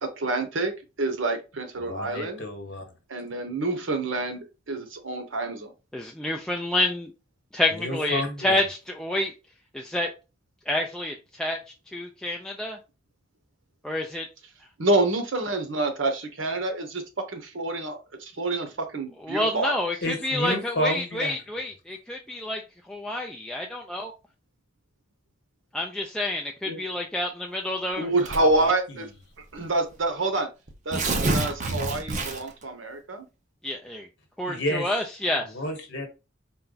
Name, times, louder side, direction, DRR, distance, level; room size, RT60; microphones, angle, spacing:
voice 1, 0.0-0.7 1.0-2.4 3.1-5.7 14.8-19.7 26.7-26.8 28.0-29.1 29.5-30.5 30.8-33.3, right 2 dB, 75° right, 0.9 m, -27 dB
voice 2, 1.8-2.8 7.7-8.6 20.0-21.3 28.4-28.7 34.5-34.9 35.5-36.1, left 1 dB, 60° left, 1.2 m, -30 dB
voice 3, 5.9-7.1 7.5-9.3 9.7-10.1 10.7-11.6 11.9-12.8 13.8-14.3 19.2-22.6 22.9-24.1 25.7-28.1 33.6-34.1 34.4-35.5, left 1 dB, 5° left, 0.4 m, -28 dB
Tearing, 28.2-28.6 29.5-29.6 29.9-30.0 30.7-32.6, right 2 dB, 40° right, 0.6 m, -27 dB
4.3 x 2.3 x 3.8 m
head